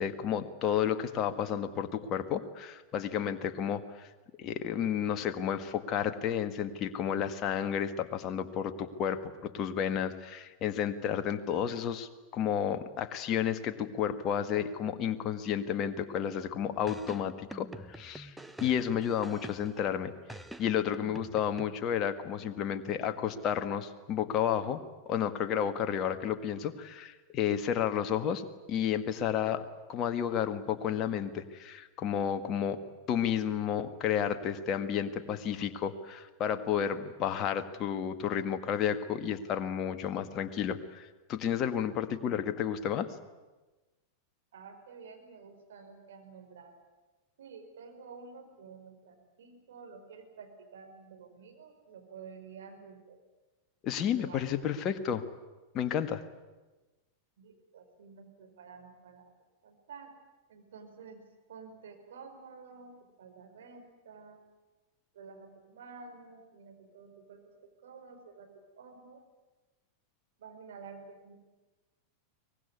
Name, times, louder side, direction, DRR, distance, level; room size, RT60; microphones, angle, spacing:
voice 1, 0.0-4.1 4.4-17.7 17.9-18.3 18.6-20.1 20.6-29.6 29.9-32.8 33.1-43.1 53.8-55.2 55.7-56.2, left 8 dB, 35° left, 9 dB, 1.8 m, -31 dB
sound 1, 16.9-19.9 20.3-21.6, right 1 dB, 5° right, 1.1 m, -46 dB
voice 2, 44.5-46.7 47.4-53.2 54.0-54.5 54.9-55.0 57.4-59.3 59.6-60.1 60.5-61.2 61.5-62.9 63.2-64.4 65.1-67.4 67.8-68.5 68.8-69.2 70.4-71.4, right 5 dB, 60° right, 4 dB, 5.0 m, -50 dB
23.5 x 20.0 x 9.7 m, 1.2 s
figure-of-eight pair, 90°, 0 cm